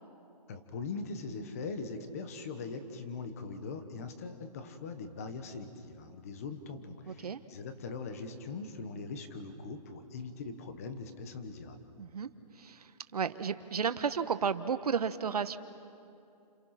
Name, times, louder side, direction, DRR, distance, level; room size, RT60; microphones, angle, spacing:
voice 1, 0.5-11.8, left 4 dB, 20° left, 9 dB, 1.2 m, -41 dB
voice 2, 7.1-7.4 12.0-12.3 12.6-15.6, right 6 dB, 65° right, 11 dB, 1.2 m, -33 dB
30.0 x 28.0 x 5.9 m, 2.7 s
hypercardioid pair, 175°, 21 cm